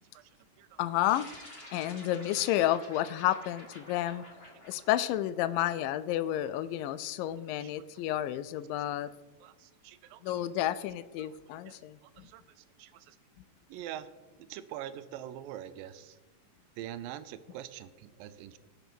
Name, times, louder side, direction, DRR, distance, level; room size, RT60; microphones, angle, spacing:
voice 1, 0.8-1.3 1.7-4.3 4.6-9.1 10.2-12.3, left 13 dB, 85° left, 15 dB, 2.3 m, -31 dB
sound 1, 1.1-5.8, left 1 dB, 30° left, 1.0 m, -50 dB
voice 2, 7.6-8.0 9.4-10.5 11.2-11.4 11.7-13.2 13.7-14.1 14.4-16.2 16.8-18.6, right 11 dB, 85° right, 12 dB, 2.4 m, -45 dB
17.5 x 5.9 x 6.0 m, 1.2 s
omnidirectional pair, 3.9 m